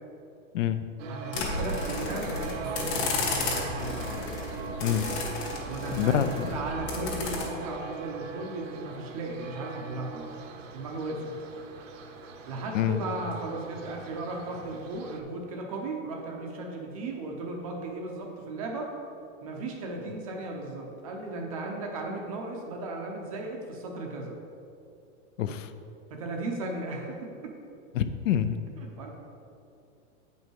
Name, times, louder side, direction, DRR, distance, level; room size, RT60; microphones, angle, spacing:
voice 1, 0.5-0.9 4.8-5.1 5.9-6.5 12.7-13.0 25.4-25.7 27.9-28.6, left 10 dB, 65° left, 11 dB, 0.5 m, -26 dB
sound 1, 1.0-15.2, right 5 dB, 65° right, 0.8 m, -41 dB
voice 2, 1.1-4.0 5.6-10.3 10.7-11.3 12.5-18.9 19.4-24.3 26.1-27.6 28.8-29.1, right 2 dB, 25° right, 1 dB, 0.6 m, -36 dB
sound 2, 1.3-7.4, left 3 dB, 45° left, 1.7 m, -33 dB
7.9 x 5.5 x 4.6 m, 2.7 s
supercardioid pair, 175°, 42 cm